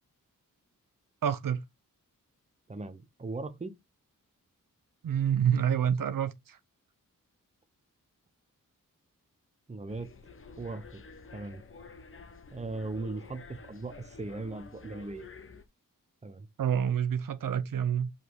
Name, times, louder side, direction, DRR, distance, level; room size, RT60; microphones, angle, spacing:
voice 1, 1.2-1.6 5.0-6.6 16.6-18.1, right 8 dB, 75° right, 0.8 m, -28 dB
voice 2, 2.7-3.7 9.7-10.1 10.6-11.0 11.3-11.6 12.5-15.3 16.2-16.5, right 3 dB, 20° right, 0.9 m, -38 dB
sound 1, 9.9-15.6, left 4 dB, 40° left, 0.9 m, -50 dB
5.3 x 4.1 x 4.7 m
wide cardioid pair, 110°, 33 cm